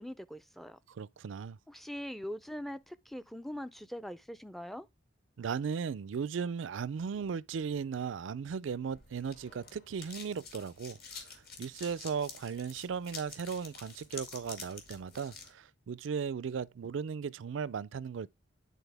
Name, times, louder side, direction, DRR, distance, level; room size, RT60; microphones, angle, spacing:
voice 1, 0.0-0.8 1.7-4.9, equal, ahead, 0.4 m, -42 dB
voice 2, 0.9-1.6 5.4-18.3, right 6 dB, 85° right, 0.4 m, -37 dB
sound 1, 8.9-15.5, left 4 dB, 55° left, 2.0 m, -49 dB
10.0 x 4.1 x 3.4 m
head